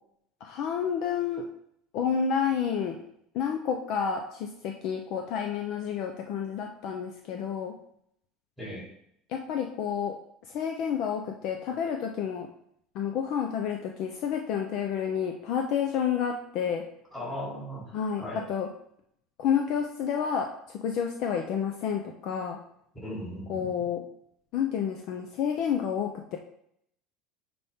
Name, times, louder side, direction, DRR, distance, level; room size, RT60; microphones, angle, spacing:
voice 1, 0.4-1.5 1.9-3.0 3.3-7.7 9.3-10.1 10.5-12.5 12.9-16.8 17.9-18.7 19.4-22.6 23.5-24.0 24.5-26.4, left 7 dB, 50° left, 2 dB, 0.7 m, -30 dB
voice 2, 17.1-17.9 18.2-18.4 23.0-23.7, equal, 10° left, -6 dB, 3.3 m, -37 dB
9.8 x 4.3 x 3.7 m, 0.71 s
cardioid pair, 165°, 0 cm